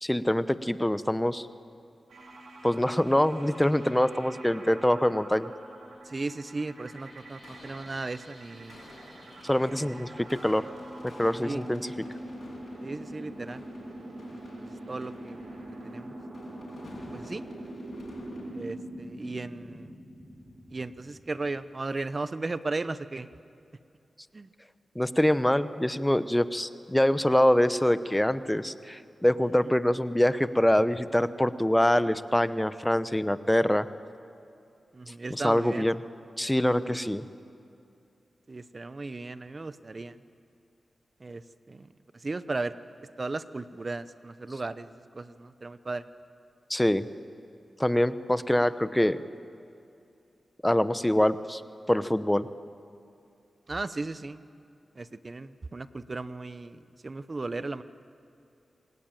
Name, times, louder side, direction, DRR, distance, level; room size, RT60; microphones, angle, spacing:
voice 1, 0.0-1.5 2.6-5.5 9.4-10.7 11.2-11.8 24.9-33.9 35.4-36.0 36.4-37.2 46.7-47.1 47.8-49.2 50.6-51.6 51.9-52.5, left 1 dB, 10° left, 13 dB, 0.9 m, -24 dB
sound 1, 2.1-21.6, right 1 dB, 85° right, 3.9 m, -44 dB
voice 2, 6.0-8.9 9.4-10.1 11.4-11.7 12.8-13.6 14.6-16.1 17.1-17.4 18.5-20.0 20.7-23.3 24.3-24.5 34.9-35.9 36.9-37.2 38.5-40.2 41.2-42.7 43.2-46.0 53.7-54.4 54.9-57.8, right 3 dB, 45° right, 13 dB, 0.8 m, -36 dB
sound 2, 7.0-18.6, left 2 dB, 70° left, 7.0 m, -52 dB
27.0 x 19.0 x 9.1 m, 2.5 s
cardioid pair, 50°, 0 cm